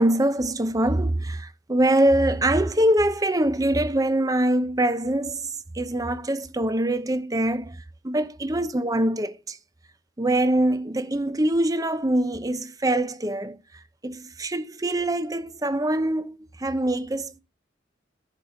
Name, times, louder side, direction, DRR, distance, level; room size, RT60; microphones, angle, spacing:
voice 1, 0.0-9.6 10.2-13.6 14.0-17.4, right 1 dB, 20° right, 0.7 m, -24 dB
15.0 x 5.1 x 3.7 m
head